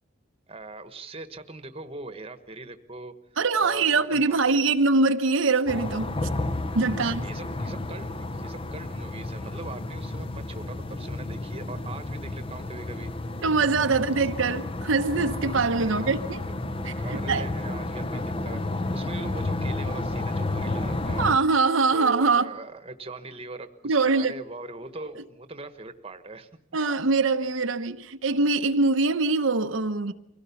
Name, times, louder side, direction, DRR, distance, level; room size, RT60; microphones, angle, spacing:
voice 1, 0.5-3.1 3.6-4.8 6.9-8.1 8.4-13.1 15.8-16.1 16.9-21.3 21.9-26.5, right 2 dB, 30° right, 1.2 m, -41 dB
voice 2, 3.4-6.1 6.7-7.2 13.4-16.4 16.8-17.5 21.2-22.5 23.8-24.3 26.7-30.1, right 3 dB, 70° right, 0.8 m, -23 dB
sound 1, 5.7-21.4, left 2 dB, 25° left, 0.8 m, -31 dB
24.5 x 17.0 x 7.0 m
head